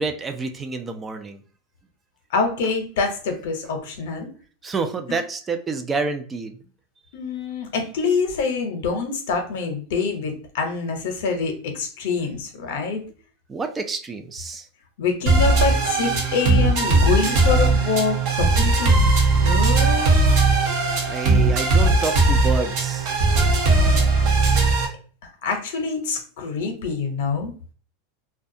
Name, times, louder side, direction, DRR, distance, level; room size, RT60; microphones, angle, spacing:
voice 1, 0.0-1.4 4.6-6.6 13.5-14.7 21.1-23.1, right 4 dB, 20° right, 7 dB, 0.3 m, -28 dB
voice 2, 2.3-4.3 5.1-5.2 7.1-13.0 15.0-20.4 23.7-24.1 25.4-27.5, left 4 dB, 75° left, 4 dB, 0.7 m, -26 dB
sound 1, 15.3-24.9, right 3 dB, 60° right, 0.8 m, -18 dB
2.3 x 2.2 x 2.6 m, 0.40 s
supercardioid pair, 120°, 0 cm